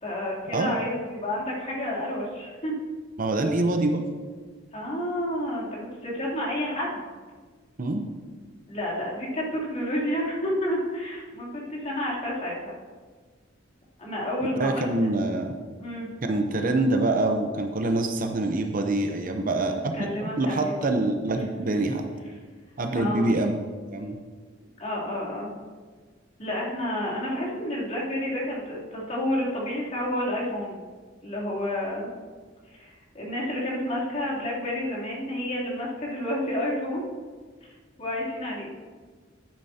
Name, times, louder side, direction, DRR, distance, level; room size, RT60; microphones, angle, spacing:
voice 1, 0.0-2.7 4.7-7.1 8.7-12.7 14.0-15.1 15.8-16.1 19.9-20.9 21.9-22.0 22.9-23.3 24.8-25.5 26.4-30.8 31.2-32.1 32.7-32.9 33.1-37.0 37.6-37.7 38.0-38.7, left 1 dB, 40° left, -6 dB, 3.0 m, -30 dB
voice 2, 3.2-4.0 7.8-8.0 14.6-15.5 16.2-22.0 22.8-23.5 23.9-24.2, right 2 dB, 45° right, 5 dB, 0.7 m, -25 dB
12.0 x 9.1 x 2.8 m, 1.5 s
head